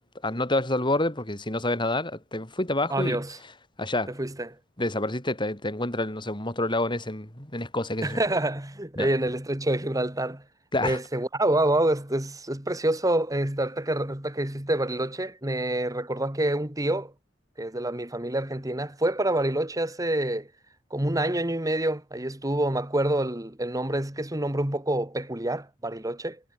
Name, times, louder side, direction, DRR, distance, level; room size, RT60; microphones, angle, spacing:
voice 1, 0.2-3.2 3.8-4.1 4.8-8.2 9.0-9.1 10.7-11.0, left 2 dB, 25° left, 5.1 m, -28 dB
voice 2, 2.9-3.4 4.2-4.6 8.0-10.4 10.8-17.1 17.6-20.5 20.9-26.4, right 1 dB, 20° right, 2.1 m, -27 dB
head